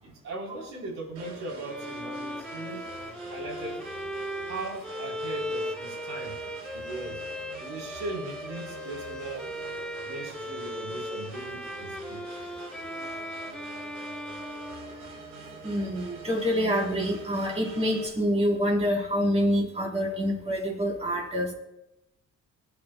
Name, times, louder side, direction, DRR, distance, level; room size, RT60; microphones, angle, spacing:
voice 1, 0.0-2.8 3.3-3.8 4.5-6.4 6.7-7.2 7.6-9.5 10.1-12.4, right 2 dB, 65° right, 0 dB, 3.6 m, -39 dB
sound 1, 1.1-18.1, right 2 dB, 85° right, 4.3 m, -45 dB
Bowed string instrument, 1.7-15.6, equal, 5° left, 0.7 m, -38 dB
voice 2, 15.6-21.5, equal, 20° right, -1 dB, 3.5 m, -26 dB
21.0 x 9.2 x 2.2 m, 0.87 s
cardioid pair, 90°, 30 cm